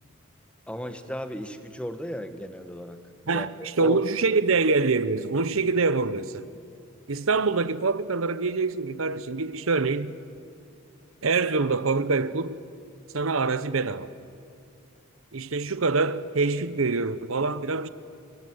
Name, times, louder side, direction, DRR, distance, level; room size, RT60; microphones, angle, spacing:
voice 1, 0.7-4.0, equal, 5° left, 1.3 m, -35 dB
voice 2, 3.3-6.4 7.1-10.1 11.2-12.6 13.1-14.1 15.3-17.9, right 4 dB, 80° right, 0.9 m, -25 dB
26.5 x 23.0 x 9.4 m
head